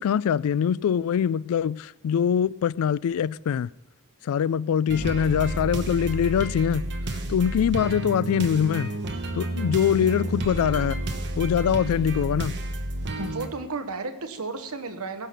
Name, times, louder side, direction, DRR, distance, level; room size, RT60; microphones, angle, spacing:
voice 1, 0.0-3.7 4.2-8.9 9.3-11.0 11.4-12.5, left 8 dB, 70° left, 0.3 m, -23 dB
sound 1, 4.9-13.5, right 1 dB, 50° right, 1.1 m, -31 dB
voice 2, 13.2-15.3, right 3 dB, 70° right, 1.1 m, -33 dB
16.5 x 5.9 x 6.7 m
head